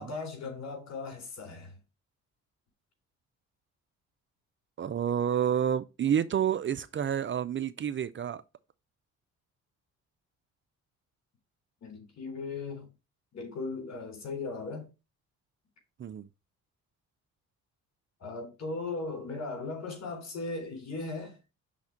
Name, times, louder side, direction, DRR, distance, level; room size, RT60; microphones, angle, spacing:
voice 1, 0.0-1.8 11.8-12.9 13.3-14.9 18.2-21.4, left 3 dB, 60° left, 3.7 m, -37 dB
voice 2, 4.8-8.4 16.0-16.3, right 9 dB, 40° right, 0.5 m, -29 dB
5.8 x 4.1 x 5.9 m
cardioid pair, 90°, 30 cm